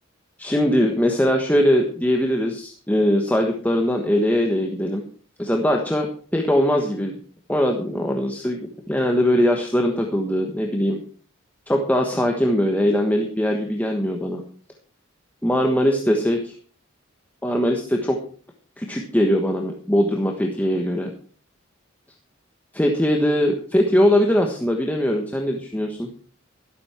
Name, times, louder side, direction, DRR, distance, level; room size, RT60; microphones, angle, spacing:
voice 1, 0.4-5.0 5.4-7.2 7.5-8.6 8.9-11.0 11.7-14.4 15.4-16.5 17.4-18.2 18.8-21.1 22.7-26.1, equal, 10° left, 2 dB, 1.3 m, -21 dB
13.0 x 12.0 x 4.5 m, 0.43 s
head